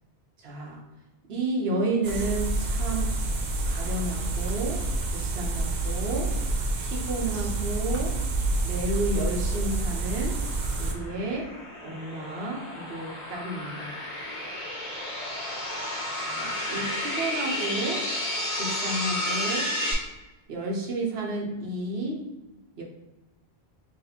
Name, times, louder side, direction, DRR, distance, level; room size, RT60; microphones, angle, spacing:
voice 1, 0.4-0.8 1.3-3.1 3.7-4.8 5.1-6.3 6.8-8.2 8.6-10.4 10.8-11.5 11.8-13.9 16.3-18.1 18.6-19.7 20.5-22.2 22.8-22.9, right 2 dB, 70° right, -1 dB, 1.1 m, -31 dB
Forest insects, 2.0-10.9, right 2 dB, 50° right, 0.6 m, -28 dB
sound 1, 9.1-19.9, left 1 dB, 40° left, 1.0 m, -32 dB
3.2 x 2.8 x 4.1 m, 1.1 s
omnidirectional pair, 1.1 m